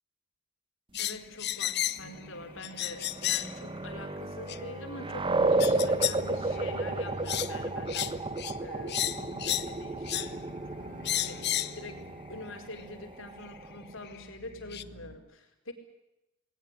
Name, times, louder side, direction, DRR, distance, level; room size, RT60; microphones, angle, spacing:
sound 1, 0.9-2.1 2.6-3.6 4.5-4.6 5.6-6.2 6.6-6.8 7.3-7.5 7.9-8.1 8.4-8.5 8.9-9.7 10.1-10.3 11.0-11.8 12.8-12.9 14.1-14.2 14.7-14.8, left 13 dB, 55° left, 0.9 m, -32 dB
voice 1, 1.0-8.2 8.6-10.5 11.1-15.7, left 2 dB, 75° left, 5 dB, 4.7 m, -45 dB
sound 2, 2.0-13.6 14.1-15.2, equal, 45° right, 6.1 m, -47 dB
sound 3, 2.6-14.1, right 2 dB, 25° right, 1.3 m, -33 dB
20.0 x 19.0 x 10.0 m, 0.92 s
head